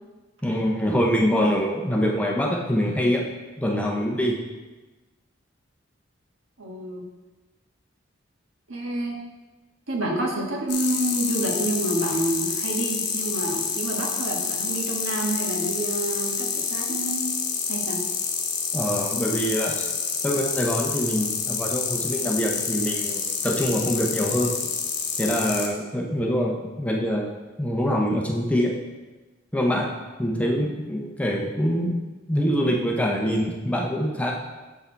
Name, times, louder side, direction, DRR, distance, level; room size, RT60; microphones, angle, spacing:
voice 1, 0.4-3.2 3.6-4.4 18.7-20.0 20.2-24.5 25.2-27.3 27.6-28.7 29.5-29.9 30.2-32.0 32.3-34.3, equal, 5° left, 0 dB, 0.7 m, -24 dB
voice 2, 6.6-7.1 8.7-9.1 9.9-17.3 17.7-18.0, right 1 dB, 85° right, 0 dB, 1.5 m, -28 dB
sound 1, 10.7-25.7, left 6 dB, 55° left, 1.1 m, -28 dB
7.1 x 6.2 x 4.5 m, 1.2 s
head